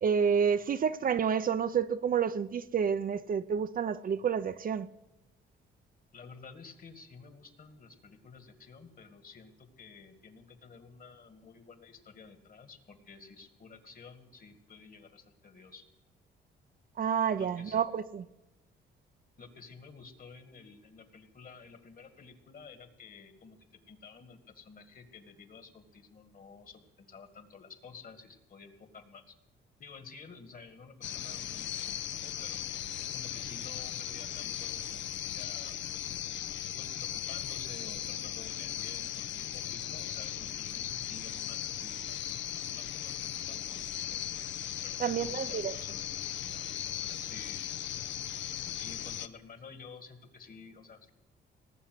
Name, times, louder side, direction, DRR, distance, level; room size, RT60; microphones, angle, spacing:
voice 1, 0.0-4.9 17.0-18.3 45.0-45.7, right 7 dB, 45° right, 0.6 m, -29 dB
voice 2, 6.1-15.8 17.4-17.8 19.4-23.6 23.9-29.4 29.8-32.6 33.1-35.8 36.8-42.5 42.7-44.2 44.8-47.6 48.8-51.1, left 5 dB, 45° left, 2.1 m, -52 dB
sound 1, 31.0-49.3, left 11 dB, 70° left, 0.8 m, -38 dB
18.5 x 7.1 x 9.5 m
cardioid pair, 90°, 20 cm